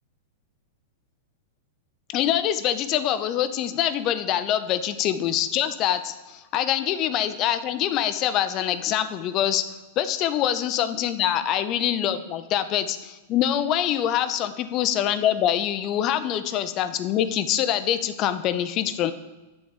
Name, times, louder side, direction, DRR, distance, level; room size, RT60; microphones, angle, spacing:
voice 1, 2.1-19.1, left 11 dB, 40° left, 11 dB, 0.5 m, -25 dB
7.9 x 3.4 x 5.0 m, 1.1 s
hypercardioid pair, 110°, 0 cm